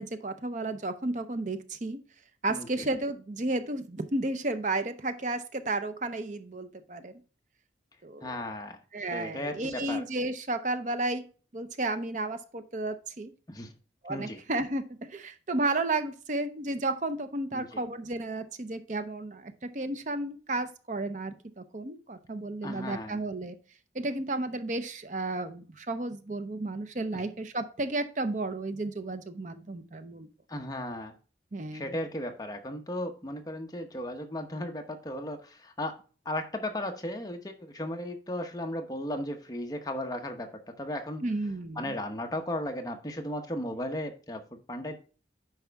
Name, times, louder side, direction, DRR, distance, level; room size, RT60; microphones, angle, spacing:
voice 1, 0.0-2.0 2.4-7.1 8.0-8.3 8.9-11.2 11.5-13.3 14.0-14.8 15.1-23.6 23.9-30.3 31.5-32.0 41.2-42.0, right 2 dB, 40° right, 9 dB, 0.6 m, -32 dB
voice 2, 2.5-2.9 8.2-8.8 9.1-10.0 13.5-13.7 14.1-14.4 17.5-17.8 22.6-23.2 27.1-27.2 30.5-31.1 31.7-36.0 36.2-41.2 41.8-45.0, left 1 dB, 20° left, 4 dB, 0.9 m, -36 dB
9.2 x 5.6 x 3.5 m, 0.37 s
head